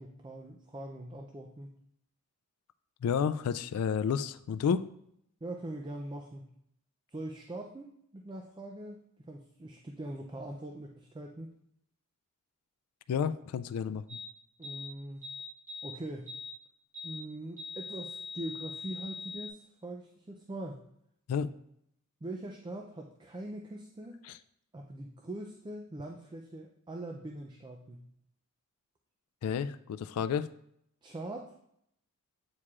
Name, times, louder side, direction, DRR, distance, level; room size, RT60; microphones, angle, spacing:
voice 1, 0.0-1.7 5.4-6.5 7.1-11.5 14.6-15.2 15.8-16.3 17.0-20.8 22.2-24.2 24.7-28.1 31.0-31.5, right 1 dB, 20° right, 2 dB, 0.4 m, -42 dB
voice 2, 3.0-4.9 13.1-14.2 21.3-21.5 24.2-24.4 29.4-30.5, left 7 dB, 80° left, 13 dB, 0.3 m, -31 dB
sound 1, 14.1-14.3 14.6-14.9 15.2-16.0 16.3-16.5 16.9-17.2 17.6-19.5, left 4 dB, 35° right, 2.3 m, -42 dB
8.5 x 4.7 x 2.4 m, 0.73 s
head